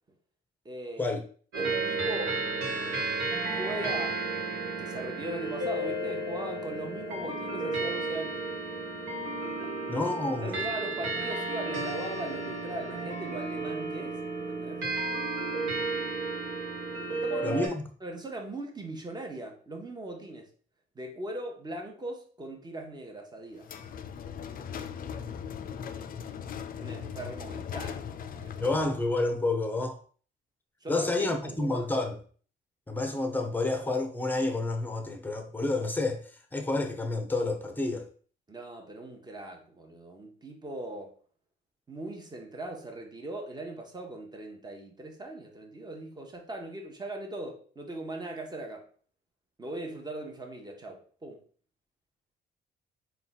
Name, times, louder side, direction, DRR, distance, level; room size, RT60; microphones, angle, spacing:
voice 1, 0.6-1.2 1.5-2.4 3.4-4.2 4.6-8.4 9.6-9.8 10.4-14.9 17.1-17.6 18.0-20.5 20.9-23.7 26.7-28.8 30.8-31.9 38.5-41.1 41.9-48.9 49.6-51.4, right 1 dB, 20° right, 1.0 m, -40 dB
sound 1, 1.5-17.7, right 3 dB, 80° right, 1.3 m, -33 dB
voice 2, 9.9-10.6 17.4-17.8 28.6-30.0 30.9-32.2 32.9-36.2 36.5-38.1, left 2 dB, 10° left, 0.7 m, -29 dB
sound 2, 23.6-29.1, left 7 dB, 45° left, 0.4 m, -39 dB
3.7 x 2.3 x 4.0 m
cardioid pair, 90°, 20 cm